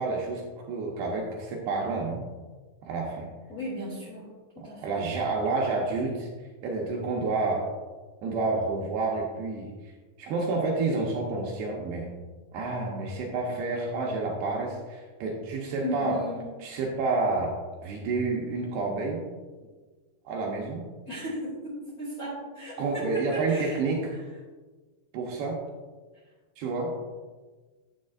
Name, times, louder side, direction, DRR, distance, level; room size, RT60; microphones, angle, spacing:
voice 1, 0.0-2.3 2.8-3.3 4.6-6.3 6.6-7.7 8.2-9.7 10.2-12.1 12.5-16.2 16.6-17.6 17.8-19.3 20.3-20.9 22.8-24.2 25.1-25.6 26.6-27.0, right 3 dB, 75° right, -1 dB, 2.7 m, -29 dB
voice 2, 3.5-4.3 4.5-5.0 6.0-6.1 15.8-16.5 21.1-23.8, left 1 dB, 25° left, -7 dB, 2.0 m, -35 dB
10.5 x 9.0 x 2.5 m, 1.3 s
omnidirectional pair, 5.3 m